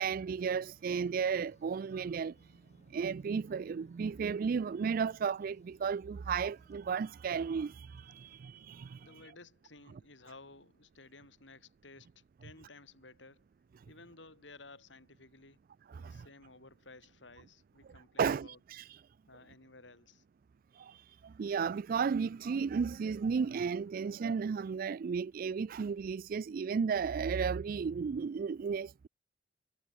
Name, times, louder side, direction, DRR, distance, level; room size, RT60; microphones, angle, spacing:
voice 1, 0.0-2.6 2.9-9.2 15.9-16.3 18.2-19.0 20.7-29.1, right 6 dB, 50° right, 0.3 m, -34 dB
sound 1, 0.6-9.2, left 1 dB, 40° left, 4.7 m, -69 dB
voice 2, 9.0-13.4 13.9-15.6 16.0-18.6 19.3-20.2, left 3 dB, 85° left, 5.8 m, -55 dB
head